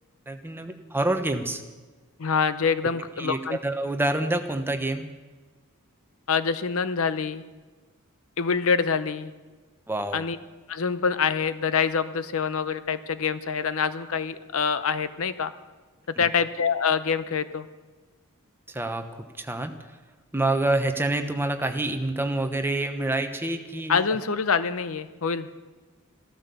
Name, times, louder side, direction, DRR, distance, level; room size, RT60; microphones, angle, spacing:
voice 1, 0.3-1.6 3.2-5.1 9.9-10.2 18.7-19.0 19.4-19.7 20.3-24.0, right 2 dB, 10° right, 6 dB, 1.0 m, -27 dB
voice 2, 2.2-3.6 6.3-7.4 8.4-9.3 10.1-10.4 10.7-15.5 16.2-17.7 23.9-25.5, left 6 dB, 65° left, 13 dB, 0.7 m, -25 dB
14.5 x 13.0 x 6.9 m, 1.3 s
head